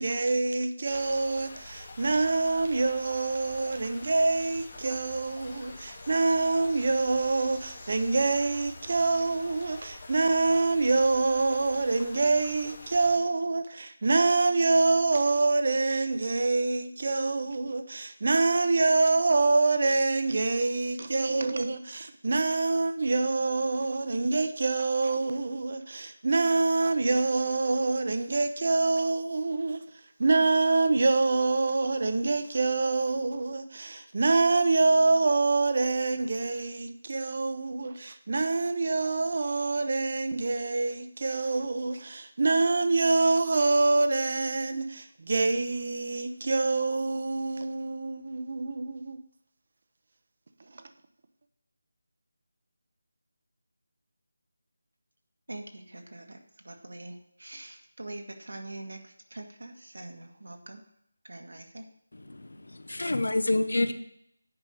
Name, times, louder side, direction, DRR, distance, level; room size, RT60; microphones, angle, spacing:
voice 1, 0.0-29.8 30.2-49.2 50.7-50.8, right 3 dB, 35° right, 0.7 m, -26 dB
sound 1, 0.9-13.2, left 2 dB, 25° left, 1.2 m, -46 dB
voice 2, 55.5-60.8 61.2-61.8, right 2 dB, 90° right, 1.8 m, -44 dB
voice 3, 62.1-63.9, left 2 dB, 85° left, 1.0 m, -28 dB
9.7 x 5.5 x 6.5 m
figure-of-eight pair, 180°, 0 cm